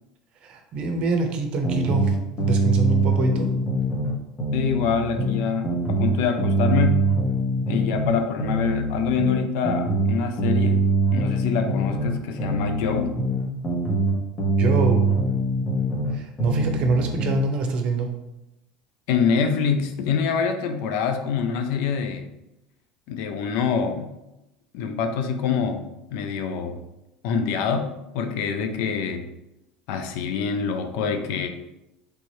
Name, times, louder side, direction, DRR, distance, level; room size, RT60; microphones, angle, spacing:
voice 1, 0.4-3.5 14.6-15.1 16.1-18.1, right 3 dB, 50° right, 5 dB, 0.6 m, -25 dB
sound 1, 1.6-4.1 4.4-8.1 8.4-12.1 12.4-16.1 16.4-17.5, right 2 dB, 30° left, 1.0 m, -23 dB
voice 2, 4.5-7.1 7.7-10.8 11.1-13.2 19.1-22.3 23.1-24.1 24.7-26.8 27.2-29.2 29.9-31.5, left 6 dB, 70° left, 7 dB, 0.4 m, -25 dB
3.3 x 2.6 x 3.1 m, 0.93 s
supercardioid pair, 100°, 2 cm